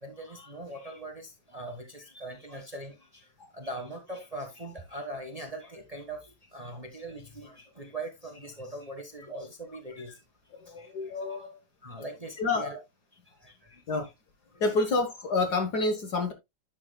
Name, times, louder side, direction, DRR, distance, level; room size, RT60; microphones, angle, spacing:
voice 1, 0.0-3.3 3.5-10.1 10.8-10.9 11.8-12.8 13.4-13.8, right 1 dB, 20° right, 1.2 m, -41 dB
voice 2, 10.5-11.6 12.4-12.7 13.9-14.1 14.6-16.3, left 3 dB, 55° left, 1.5 m, -28 dB
10.5 x 7.4 x 2.2 m
omnidirectional pair, 2.4 m